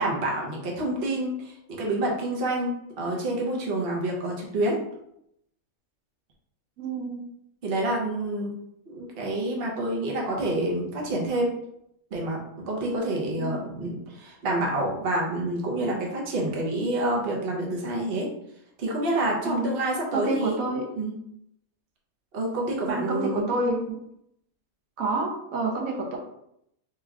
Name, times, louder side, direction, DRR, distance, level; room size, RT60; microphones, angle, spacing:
voice 1, 0.0-4.8 7.6-8.5 8.9-11.5 12.1-12.4 12.7-18.3 18.8-20.6 21.0-21.1 22.3-23.5, right 1 dB, 50° right, -2 dB, 0.9 m, -28 dB
voice 2, 6.8-7.2 13.3-13.6 19.4-19.7 20.1-20.8 22.9-24.0 25.0-26.2, right 2 dB, 75° right, 0 dB, 1.1 m, -28 dB
3.2 x 2.3 x 3.5 m, 0.77 s
omnidirectional pair, 1.5 m